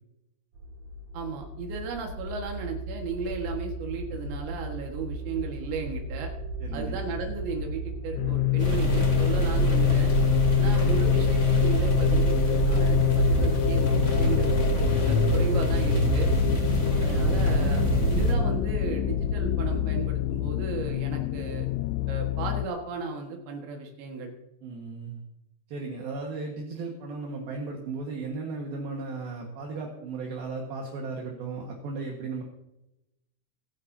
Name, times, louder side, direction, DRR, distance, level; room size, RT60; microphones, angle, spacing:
sound 1, 0.5-20.0, equal, 45° right, 2.7 m, -35 dB
voice 1, 1.1-6.3 6.7-10.1 10.6-16.3 17.0-17.8 18.1-21.7 22.1-24.3, right 4 dB, 85° right, 2 dB, 3.9 m, -35 dB
voice 2, 6.6-7.0 10.5-10.6 24.6-25.2 25.7-32.4, right 3 dB, 65° right, 0 dB, 3.2 m, -35 dB
sound 2, 8.2-22.7, left 17 dB, 90° left, 2.9 m, -26 dB
sound 3, 8.6-18.3, right 2 dB, 25° left, 2.0 m, -25 dB
26.0 x 10.5 x 2.8 m, 0.92 s
omnidirectional pair, 5.1 m